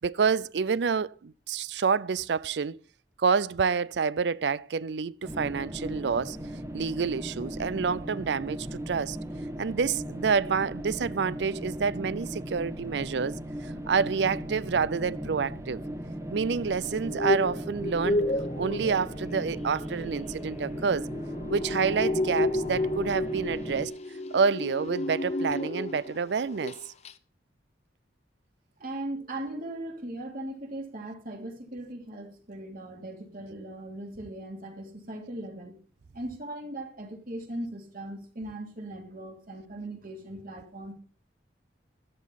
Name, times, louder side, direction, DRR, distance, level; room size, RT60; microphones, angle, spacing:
voice 1, 0.0-2.8 3.2-6.4 6.7-9.2 9.6-13.4 13.9-15.8 16.3-18.2 18.6-21.1 21.5-23.9 24.3-26.8, right 5 dB, 70° right, 0.5 m, -28 dB
sound 1, 5.2-23.9, equal, 15° right, 1.2 m, -37 dB
sound 2, 16.9-26.2 26.5-26.8 27.1-27.2, left 2 dB, 35° left, 0.7 m, -31 dB
voice 2, 28.8-35.8 36.1-40.9, right 1 dB, 50° right, 2.9 m, -39 dB
13.0 x 11.5 x 4.1 m
head